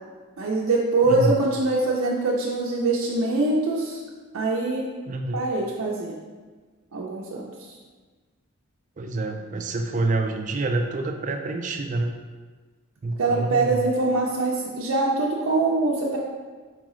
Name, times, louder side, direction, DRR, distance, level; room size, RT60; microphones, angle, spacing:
voice 1, 0.4-4.0 4.3-4.9 5.3-6.2 6.9-7.4 13.2-16.2, right 2 dB, 90° right, -3 dB, 0.5 m, -23 dB
voice 2, 1.1-1.4 5.1-5.5 9.0-12.2 13.0-13.9, right 2 dB, 35° right, 5 dB, 0.3 m, -27 dB
4.5 x 3.7 x 3.1 m, 1.4 s
head